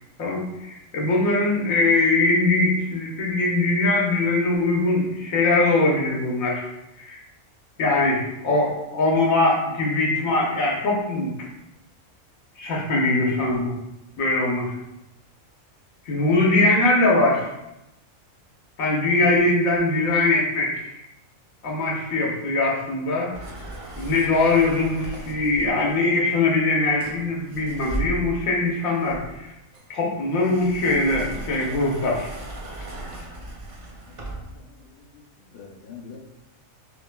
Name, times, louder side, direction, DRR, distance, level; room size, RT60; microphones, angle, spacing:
voice 1, 0.2-6.7 7.0-7.2 7.8-11.5 12.6-13.8 14.2-14.8 16.1-17.5 18.8-20.9 21.6-23.3 24.0-29.5 29.9-32.3, left 2 dB, 80° left, -2 dB, 1.4 m, -22 dB
sound 1, 23.3-25.9 27.0-28.5 29.0-34.6, right 2 dB, 40° right, 0.5 m, -36 dB
voice 2, 34.0-36.2, left 6 dB, 50° left, -2 dB, 0.9 m, -46 dB
5.9 x 3.1 x 2.2 m, 0.89 s
omnidirectional pair, 1.4 m